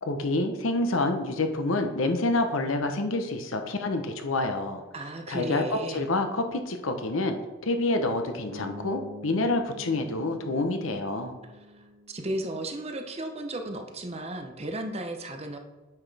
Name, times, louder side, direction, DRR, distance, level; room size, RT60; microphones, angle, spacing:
voice 1, 0.0-4.8 5.3-7.4 7.6-11.3, left 2 dB, 80° left, 6 dB, 0.8 m, -27 dB
voice 2, 4.9-6.1 11.8-15.6, right 1 dB, 30° right, 4 dB, 0.8 m, -34 dB
sound 1, 8.5-12.7, left 1 dB, 70° right, 1.1 m, -45 dB
8.7 x 6.0 x 3.4 m, 1.2 s
head